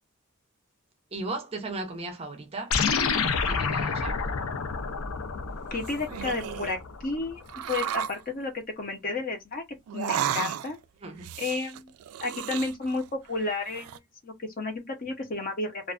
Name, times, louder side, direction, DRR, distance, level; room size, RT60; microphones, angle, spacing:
voice 1, 1.1-2.8 3.5-4.2 11.0-11.3, right 2 dB, 30° right, 0.5 m, -36 dB
sound 1, 2.7-7.4, left 5 dB, 75° left, 0.5 m, -29 dB
sound 2, 5.6-6.8 7.5-8.2 9.9-10.8 11.2-13.1 13.4-14.0, right 9 dB, 90° right, 0.3 m, -33 dB
voice 2, 5.7-9.6 9.9-10.8 11.4-11.9 12.2-15.9, left 3 dB, 40° left, 0.7 m, -32 dB
2.4 x 2.2 x 2.3 m
head